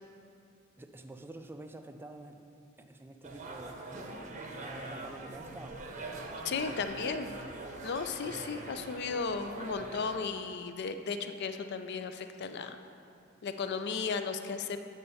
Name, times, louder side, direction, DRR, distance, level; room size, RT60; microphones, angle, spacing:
voice 1, 0.8-2.4 2.8-4.2 4.5-5.8 6.6-6.9, right 2 dB, 10° right, 6 dB, 0.3 m, -48 dB
sound 1, 3.2-10.2, right 2 dB, 35° right, 0.7 m, -43 dB
voice 2, 6.4-7.4 7.8-12.8 13.4-14.8, left 5 dB, 55° left, 8 dB, 0.4 m, -35 dB
8.5 x 4.3 x 5.5 m, 2.5 s
head